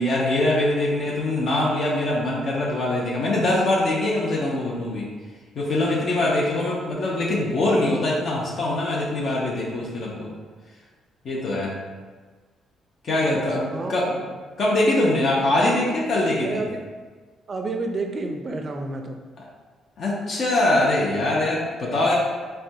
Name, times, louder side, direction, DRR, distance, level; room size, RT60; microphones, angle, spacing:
voice 1, 0.0-5.1 5.6-10.3 11.2-11.7 13.0-14.2 14.6-16.6 19.4-19.5 20.0-22.1, left 1 dB, 60° left, -4 dB, 0.6 m, -23 dB
voice 2, 13.1-13.4 13.7-13.9 16.4-16.8 17.5-19.2, right 3 dB, 40° right, 4 dB, 0.4 m, -30 dB
3.3 x 2.2 x 2.7 m, 1.4 s
cardioid pair, 80°, 0 cm